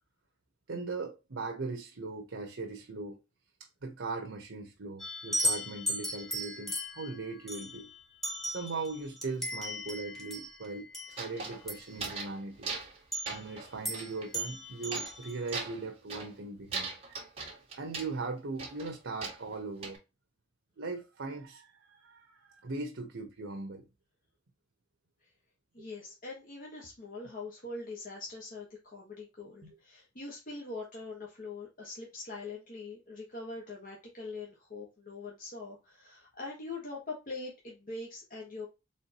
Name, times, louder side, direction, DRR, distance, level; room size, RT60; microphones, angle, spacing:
voice 1, 0.7-3.2 3.8-7.9 8.5-12.7 13.3-17.2 17.7-20.0 20.8-23.8 25.8-25.9 29.6-29.8, right 3 dB, 85° right, 0.8 m, -39 dB
sound 1, 5.0-12.0 13.1-13.5 13.9-14.1 14.3-15.5, equal, ahead, 1.3 m, -36 dB
sound 2, 11.1-12.4 12.6-13.0 13.3-14.3 14.9-15.2 15.5-16.4 16.7-18.1 18.6-20.0, right 4 dB, 30° right, 1.7 m, -39 dB
voice 2, 25.7-38.7, left 3 dB, 45° left, 1.3 m, -43 dB
4.4 x 3.7 x 2.8 m
head